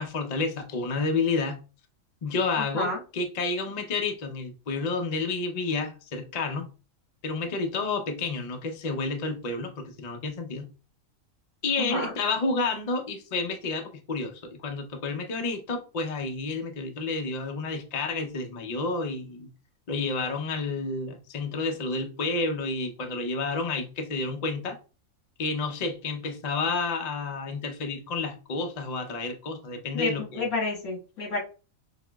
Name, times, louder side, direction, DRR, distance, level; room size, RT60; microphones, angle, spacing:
voice 1, 0.0-1.6 2.2-6.7 7.2-10.7 11.6-19.5 19.9-24.8 25.4-30.5, left 3 dB, 45° left, 0.5 m, -30 dB
voice 2, 11.8-12.1 29.9-31.4, left 3 dB, 85° left, 2.1 m, -30 dB
5.8 x 3.0 x 2.2 m
omnidirectional pair, 1.4 m